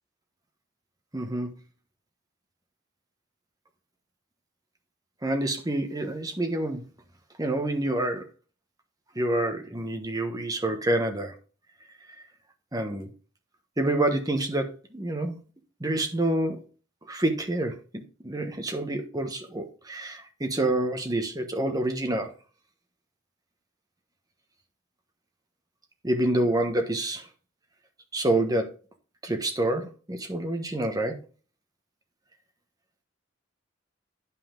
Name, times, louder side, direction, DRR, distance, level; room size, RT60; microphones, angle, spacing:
voice 1, 1.1-1.5 5.2-6.8 7.4-8.3 9.1-11.3 12.7-13.1 13.8-15.4 15.8-16.6 17.1-22.3 26.0-27.3 28.1-28.7 29.2-31.1, right 1 dB, 20° right, 1.2 m, -27 dB
9.6 x 5.7 x 3.8 m
head